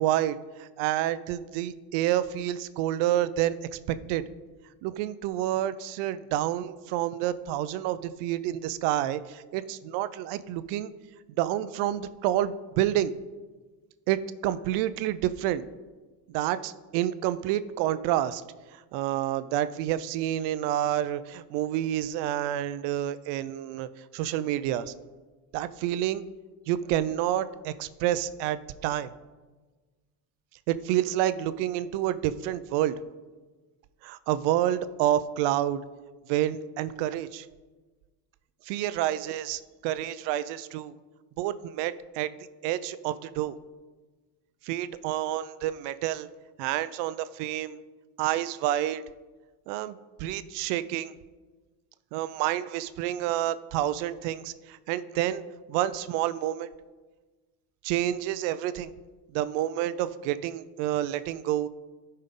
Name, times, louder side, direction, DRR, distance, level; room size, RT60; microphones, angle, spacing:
voice 1, 0.0-3.6 3.9-4.2 4.8-10.9 11.4-13.1 14.1-14.2 14.4-15.7 16.3-18.4 18.7-23.9 24.1-24.9 25.5-26.3 26.7-29.1 30.7-32.9 34.0-35.8 36.3-37.5 38.7-40.9 41.4-42.3 42.6-43.6 44.6-46.3 46.6-47.8 48.2-49.0 49.7-51.1 52.1-55.4 55.7-56.7 57.8-58.9 59.3-61.7, right 12 dB, 75° right, 14 dB, 0.5 m, -28 dB
12.5 x 5.5 x 3.7 m, 1.3 s
cardioid pair, 125°, 43 cm